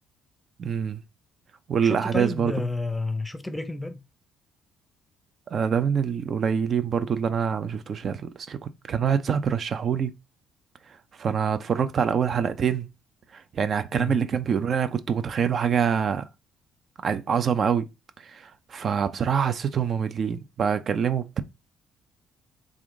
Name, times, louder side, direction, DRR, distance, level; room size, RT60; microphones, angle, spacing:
voice 1, 0.6-1.0 1.7-2.5 5.5-10.1 11.2-12.9 13.3-16.3 17.0-17.9 18.2-21.4, right 7 dB, 50° right, 0.4 m, -25 dB
voice 2, 1.8-4.0 13.9-14.2, left 2 dB, 10° left, 0.6 m, -30 dB
3.5 x 2.5 x 3.7 m
hypercardioid pair, 60°, 0 cm